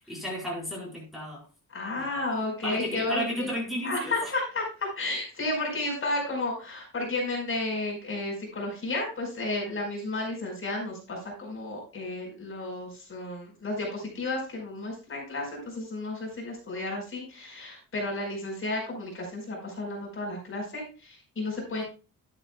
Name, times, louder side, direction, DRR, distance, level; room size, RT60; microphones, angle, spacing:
voice 1, 0.1-1.4 2.0-2.2 2.6-4.3, equal, ahead, 5.0 m, -33 dB
voice 2, 1.7-3.5 3.8-21.8, left 2 dB, 40° left, 5.1 m, -32 dB
12.5 x 8.9 x 2.3 m
wide cardioid pair, 140°, 31 cm